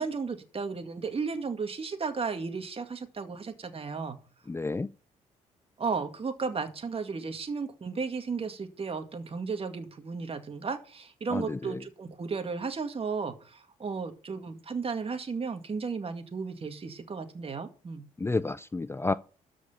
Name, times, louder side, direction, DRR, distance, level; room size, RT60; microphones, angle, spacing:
voice 1, 0.0-4.2 5.8-18.1, right 5 dB, 40° right, 2.1 m, -34 dB
voice 2, 4.5-4.9 11.3-11.8 18.2-19.1, left 3 dB, 15° left, 0.5 m, -30 dB
13.0 x 5.0 x 7.2 m
supercardioid pair, 60°, 15 cm